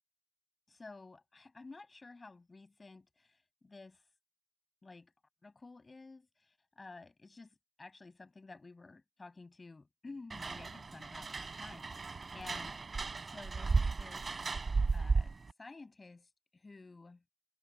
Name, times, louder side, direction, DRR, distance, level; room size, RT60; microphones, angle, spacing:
voice 1, 0.7-4.0 4.8-5.1 5.4-12.8 13.2-14.3 14.9-17.2, left 3 dB, 60° left, 7.4 m, -53 dB
sound 1, 10.3-15.5, right 4 dB, 90° right, 3.8 m, -34 dB
wide cardioid pair, 75°, 0 cm